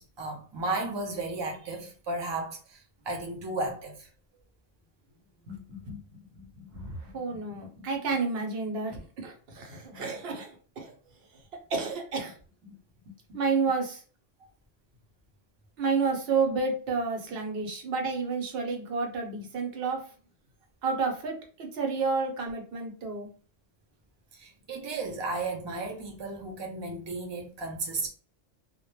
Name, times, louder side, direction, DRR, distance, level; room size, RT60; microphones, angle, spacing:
voice 1, 0.0-4.1 24.3-28.1, right 2 dB, 40° right, 0.4 m, -34 dB
voice 2, 5.5-10.9 11.7-12.3 13.3-14.0 15.8-20.0 20.8-23.3, right 4 dB, 65° right, 0.9 m, -31 dB
2.1 x 2.0 x 3.0 m
omnidirectional pair, 1.2 m